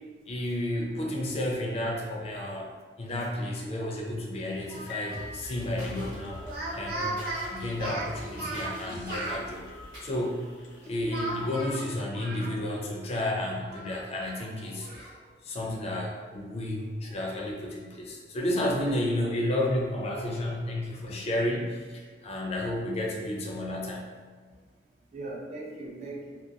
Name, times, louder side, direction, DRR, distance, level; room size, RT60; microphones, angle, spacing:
voice 1, 0.3-6.4 6.7-7.2 7.5-9.7 10.0-10.5 10.8-15.1 15.4-24.1, left 1 dB, 35° left, -1 dB, 0.4 m, -32 dB
sound 1, 4.5-11.7, left 3 dB, 85° left, 0.5 m, -48 dB
Speech, 4.7-5.3 6.4-9.4 11.1-12.8 13.2-13.3 13.7-15.1, right 1 dB, 60° right, 0.7 m, -37 dB
sound 2, 5.1-10.2, left 1 dB, 85° right, 1.1 m, -44 dB
voice 2, 10.8-11.9 14.1-14.3 14.8-15.0 16.0-16.1 22.7-22.8 25.1-26.4, right 2 dB, 40° right, -1 dB, 0.3 m, -42 dB
2.3 x 2.2 x 2.7 m, 1.5 s
head